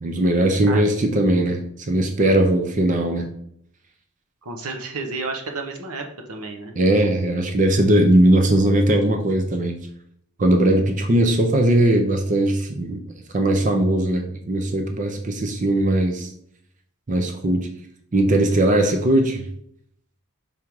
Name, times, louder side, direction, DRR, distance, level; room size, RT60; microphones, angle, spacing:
voice 1, 0.0-3.3 6.8-9.8 10.4-16.3 17.1-17.7 18.1-19.5, right 1 dB, 35° right, 5 dB, 0.5 m, -19 dB
voice 2, 4.4-6.7, right 3 dB, 90° right, 3 dB, 1.1 m, -31 dB
5.6 x 3.6 x 4.7 m, 0.69 s
head